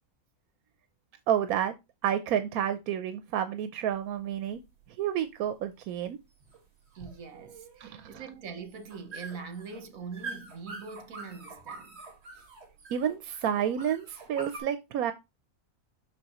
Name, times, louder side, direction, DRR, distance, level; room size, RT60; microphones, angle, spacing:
voice 1, 1.3-1.8 2.0-4.6 5.0-6.2 7.8-8.2 12.9-15.1, right 9 dB, 90° right, 1.1 m, -30 dB
sound 1, 3.9-14.6, right 3 dB, 50° right, 1.9 m, -46 dB
voice 2, 6.9-12.0, right 5 dB, 70° right, 1.5 m, -43 dB
6.2 x 6.0 x 3.0 m
omnidirectional pair, 1.5 m